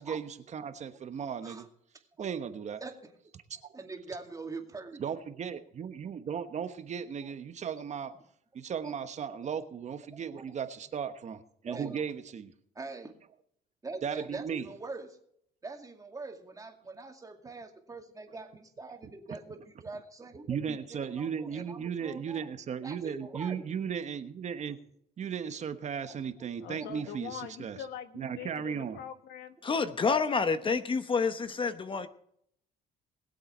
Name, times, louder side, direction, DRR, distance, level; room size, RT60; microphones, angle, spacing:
voice 1, 0.0-1.6 2.2-2.8 3.5-3.6 5.0-8.1 8.5-12.5 14.0-14.7 20.5-24.8 25.2-27.8 28.1-29.0, right 7 dB, 45° right, 1.2 m, -36 dB
voice 2, 2.1-2.5 2.8-3.1 3.7-5.1 7.2-7.3 8.8-8.9 9.4-9.5 10.1-10.6 11.7-12.0 12.7-13.2 13.8-15.2 15.6-22.5 22.8-23.6 26.1-26.2 26.6-26.9 28.5-28.6 31.8-32.1, right 3 dB, 20° right, 2.3 m, -44 dB
voice 3, 26.6-29.6, left 9 dB, 85° left, 1.5 m, -43 dB
voice 4, 29.6-32.1, left 5 dB, 30° left, 0.9 m, -28 dB
21.0 x 7.9 x 4.4 m
cardioid pair, 110°, 17 cm